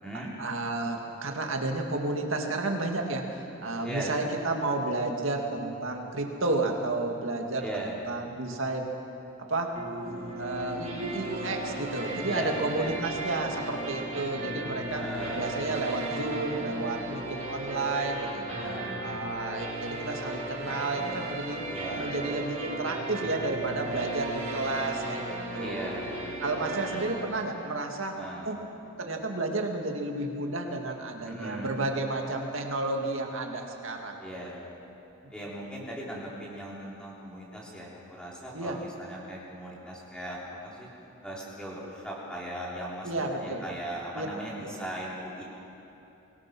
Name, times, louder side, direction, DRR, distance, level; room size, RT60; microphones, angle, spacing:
voice 1, 0.4-9.0 9.5-9.8 10.4-15.0 15.3-18.5 19.0-21.6 21.9-25.9 26.4-28.6 29.0-34.2 35.2-35.3 38.5-38.8 43.0-43.6 44.1-44.3 44.6-44.7, right 2 dB, 70° right, 2 dB, 2.2 m, -31 dB
voice 2, 7.6-8.0 12.3-13.0 14.9-15.4 18.5-19.0 21.7-22.1 25.6-26.7 28.2-28.5 31.3-31.7 34.2-34.6 35.3-40.9 41.2-45.4, right 1 dB, 5° left, -5 dB, 3.8 m, -38 dB
sound 1, 9.8-27.2, right 1 dB, 35° right, 4.4 m, -36 dB
24.0 x 19.0 x 6.1 m, 2.9 s
head